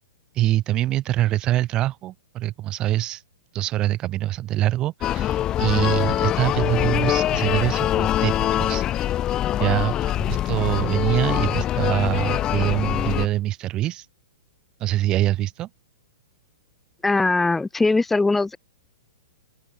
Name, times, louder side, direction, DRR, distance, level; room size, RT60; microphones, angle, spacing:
voice 1, 0.3-3.2 3.5-9.2 9.6-14.1 14.8-15.7, right 14 dB, 30° right, 4.2 m, -24 dB
sound 1, 5.0-13.3, left 12 dB, 25° left, 0.8 m, -23 dB
voice 2, 17.0-18.6, left 3 dB, 5° left, 1.3 m, -20 dB
open air
hypercardioid pair, 125°, 3 cm